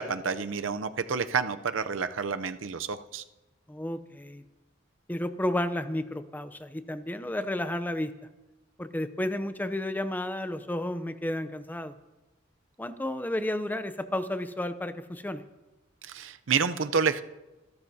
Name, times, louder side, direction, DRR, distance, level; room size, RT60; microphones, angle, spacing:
voice 1, 0.0-3.2 16.0-17.2, right 5 dB, 75° right, 11 dB, 0.6 m, -29 dB
voice 2, 3.7-4.4 5.1-8.1 8.8-11.9 12.8-15.4, left 1 dB, 10° left, 11 dB, 0.5 m, -32 dB
26.5 x 12.0 x 2.7 m, 1.1 s
head